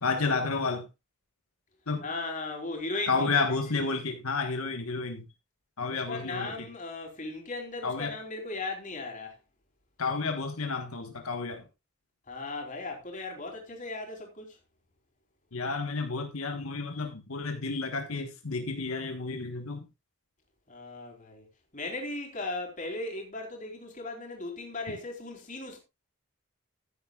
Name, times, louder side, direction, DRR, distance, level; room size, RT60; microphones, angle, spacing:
voice 1, 0.0-0.9 1.9-2.1 3.1-5.3 5.8-6.7 7.8-8.2 10.0-11.6 15.5-19.9 24.9-25.0, left 4 dB, 90° left, 1.4 m, -31 dB
voice 2, 2.0-3.5 6.1-9.3 12.3-14.6 20.7-21.5 21.7-25.8, left 2 dB, 35° left, 3.6 m, -37 dB
14.5 x 9.6 x 2.4 m
head